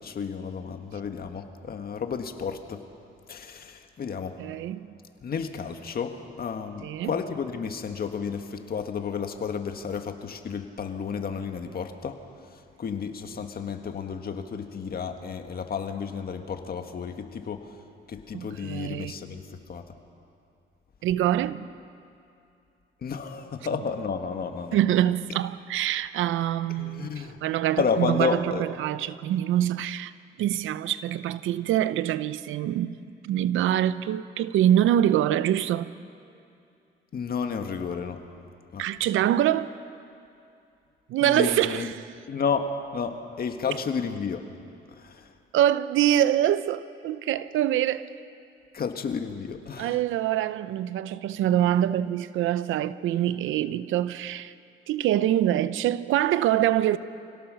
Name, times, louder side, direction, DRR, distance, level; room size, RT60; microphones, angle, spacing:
voice 1, 0.0-2.8 3.3-4.4 5.2-12.2 12.5-17.7 18.1-19.8 23.0-24.8 26.8-27.4 27.8-28.7 37.1-38.2 38.7-38.8 41.2-41.9 42.3-44.5 44.9-45.3 48.7-50.0, left 6 dB, 50° left, 1.7 m, -32 dB
voice 2, 4.4-4.9 6.8-7.1 18.3-19.1 21.0-21.7 24.7-27.1 27.4-30.1 30.4-33.0 33.2-35.9 38.8-39.7 41.1-42.0 45.5-48.0 49.8-54.5 54.9-57.0, right 12 dB, 85° right, 0.7 m, -25 dB
26.0 x 17.5 x 6.4 m
cardioid pair, 90°, 20 cm